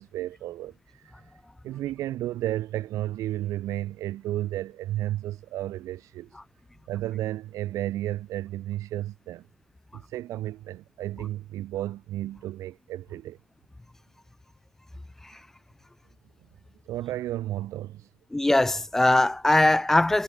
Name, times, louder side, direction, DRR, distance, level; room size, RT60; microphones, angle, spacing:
voice 1, 0.0-1.3 1.6-6.4 6.9-9.4 9.9-13.4 16.8-18.1, right 14 dB, 75° right, 1.1 m, -33 dB
voice 2, 18.3-20.2, left 2 dB, 5° left, 0.9 m, -21 dB
cardioid pair, 180°, 6 cm